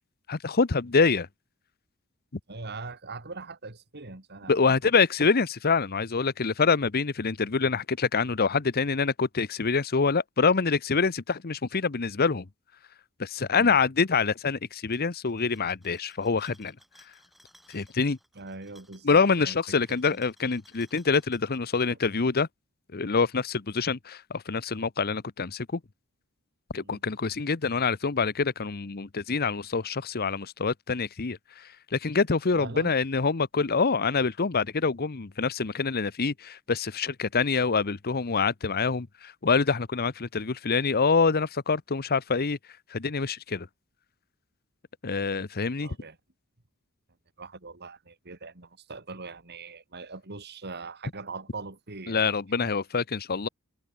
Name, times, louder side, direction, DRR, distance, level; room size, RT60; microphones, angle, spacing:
voice 1, 0.3-1.3 4.5-12.5 13.2-16.7 17.7-18.2 19.0-22.5 22.9-25.8 26.7-42.6 42.9-43.7 45.0-45.9 52.1-53.5, left 4 dB, 45° left, 0.8 m, -26 dB
voice 2, 2.5-4.8 13.5-13.8 18.3-20.2 21.9-22.0 26.8-27.0 32.5-32.9 45.8-46.2 47.4-52.2 52.6-52.7, right 3 dB, 50° right, 2.7 m, -41 dB
sound 1, 14.8-21.8, equal, ahead, 6.4 m, -60 dB
head